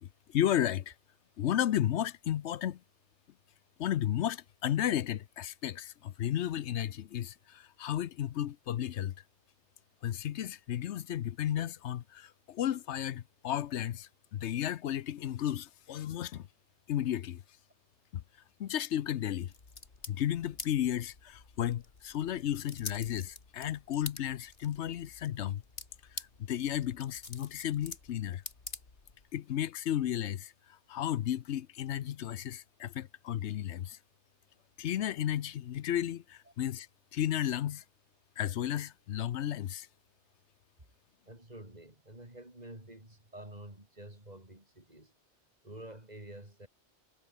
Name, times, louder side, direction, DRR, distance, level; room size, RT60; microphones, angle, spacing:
voice 1, 0.0-0.9 1.4-2.8 3.8-9.1 10.0-16.5 16.9-17.4 18.1-18.2 18.6-19.5 20.1-25.6 26.1-28.4 29.3-34.0 34.8-36.9 37.1-37.8 38.4-39.9, left 11 dB, 80° left, 1.0 m, -33 dB
sound 1, 19.4-29.3, left 4 dB, 60° left, 2.5 m, -48 dB
voice 2, 41.3-45.1 45.6-46.7, right 1 dB, 35° right, 5.3 m, -49 dB
omnidirectional pair, 1.2 m